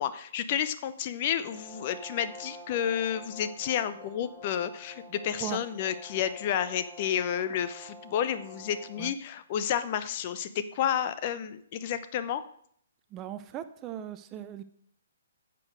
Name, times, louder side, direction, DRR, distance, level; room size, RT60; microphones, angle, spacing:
voice 1, 0.0-12.4, left 9 dB, 35° left, 12 dB, 0.7 m, -31 dB
Brass instrument, 1.4-9.1, equal, 20° left, 3.1 m, -48 dB
voice 2, 13.1-14.6, right 11 dB, 20° right, 11 dB, 0.7 m, -38 dB
10.5 x 6.9 x 6.3 m, 0.65 s
figure-of-eight pair, 130°, 0 cm